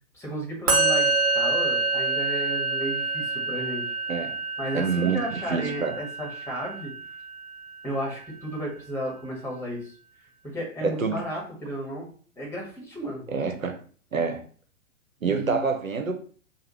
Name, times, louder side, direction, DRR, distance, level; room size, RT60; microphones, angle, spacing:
voice 1, 0.0-3.9 4.6-6.9 7.8-9.9 10.4-12.1 12.4-13.3 15.2-15.7, equal, 5° left, -2 dB, 1.6 m, -33 dB
Musical instrument, 0.7-8.0, right 3 dB, 50° right, 1.9 m, -27 dB
voice 2, 4.7-6.0 10.8-11.2 13.3-13.8 14.1-14.4 15.2-16.1, right 5 dB, 85° right, 6 dB, 0.9 m, -27 dB
4.8 x 2.6 x 3.1 m, 0.44 s
figure-of-eight pair, 110°, 40 cm